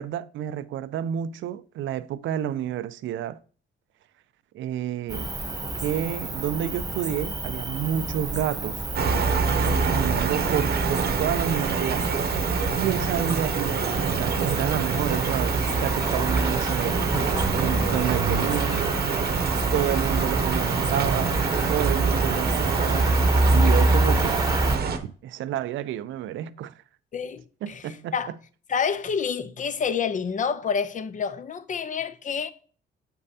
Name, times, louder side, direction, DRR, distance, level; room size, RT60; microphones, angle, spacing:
voice 1, 0.0-3.4 4.5-5.3 5.8-8.8 9.8-12.1 12.8-17.2 17.5-18.9 19.7-21.4 21.7-23.2 23.5-24.4 24.9-26.7 27.6-28.2, right 11 dB, 75° right, 0.5 m, -29 dB
Cricket, 5.1-24.8, right 2 dB, 20° right, 1.0 m, -27 dB
sound 1, 8.9-25.0, right 5 dB, 50° right, 0.9 m, -26 dB
voice 2, 9.9-10.3 27.1-28.3 28.7-32.5, left 6 dB, 40° left, 0.6 m, -28 dB
8.0 x 5.4 x 2.8 m
cardioid pair, 90°, 20 cm